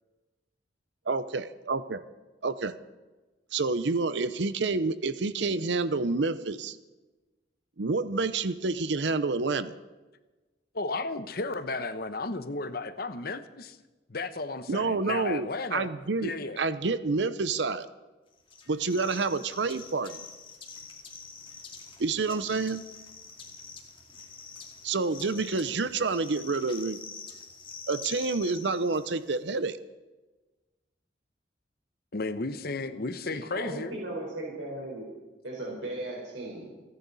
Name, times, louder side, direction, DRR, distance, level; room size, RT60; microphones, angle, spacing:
voice 1, 1.1-2.0 2.4-2.7 3.5-6.8 7.8-9.7 14.7-16.3 16.6-17.9 18.7-20.2 22.0-22.8 24.8-27.0 27.9-29.8, right 3 dB, 70° right, 13 dB, 0.7 m, -28 dB
voice 2, 10.7-13.8 14.1-15.9 16.2-16.6 32.1-33.9, left 3 dB, 55° left, 11 dB, 1.0 m, -34 dB
sound 1, 18.5-29.4, left 5 dB, 30° left, 2.2 m, -46 dB
voice 3, 33.3-35.0 35.4-36.7, right 1 dB, 85° right, -3 dB, 4.5 m, -37 dB
29.0 x 10.5 x 4.1 m, 1.2 s
head